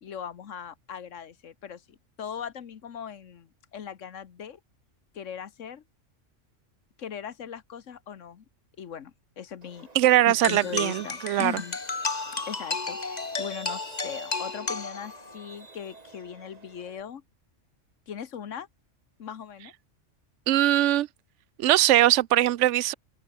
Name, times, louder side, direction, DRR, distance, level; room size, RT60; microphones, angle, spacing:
voice 1, 0.0-4.6 5.1-5.8 7.0-8.4 8.8-9.9 10.3-11.8 12.3-17.2 18.1-18.7 19.2-19.7, left 8 dB, 75° left, 1.5 m, -39 dB
Truck, 9.6-17.0, right 3 dB, 30° right, 1.7 m, -49 dB
voice 2, 9.9-11.5 20.5-21.1 21.6-22.9, right 14 dB, 75° right, 0.9 m, -21 dB
sound 1, 10.4-15.4, left 4 dB, 35° left, 1.6 m, -33 dB
omnidirectional pair, 1.3 m